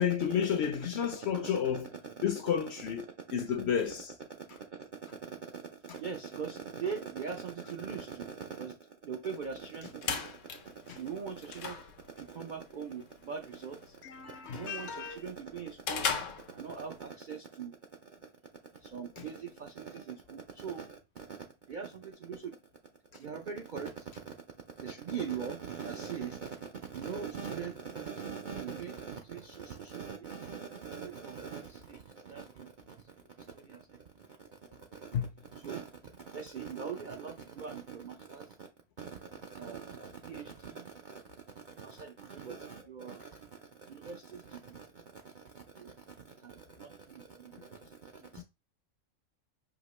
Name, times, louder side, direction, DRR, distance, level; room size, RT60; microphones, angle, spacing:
voice 1, 0.0-1.9 2.2-3.0 3.3-4.1 10.9-11.0 14.0-15.2 19.2-19.3 35.1-35.3, left 8 dB, 65° left, 0.7 m, -31 dB
voice 2, 1.3-2.2 3.0-3.1 4.4-11.8 12.1-14.0 14.4-18.3 18.6-22.6 23.2-24.3 24.8-33.0 33.4-35.2 35.5-35.9 36.2-38.7 39.0-41.2 41.6-48.4, right 6 dB, 65° right, 0.4 m, -42 dB
sound 1, 9.6-17.1, left 6 dB, 85° left, 1.2 m, -40 dB
5.1 x 2.8 x 3.1 m
omnidirectional pair, 1.4 m